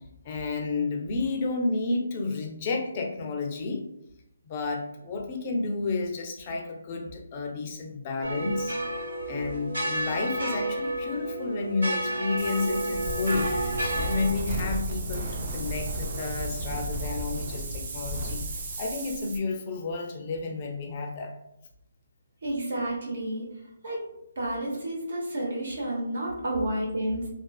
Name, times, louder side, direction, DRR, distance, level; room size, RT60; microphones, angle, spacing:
voice 1, 0.2-3.8 4.5-8.8 9.3-18.4 18.8-21.3, left 3 dB, 30° left, 2 dB, 0.4 m, -31 dB
sound 1, 8.2-14.3, right 1 dB, 85° right, 1.4 m, -31 dB
Wind, 12.4-19.4, right 1 dB, 35° right, 0.4 m, -33 dB
voice 2, 22.4-23.5 23.8-24.0 24.4-27.3, right 1 dB, 65° right, -4 dB, 0.8 m, -30 dB
2.4 x 2.3 x 2.3 m, 0.81 s
hypercardioid pair, 160°, 0 cm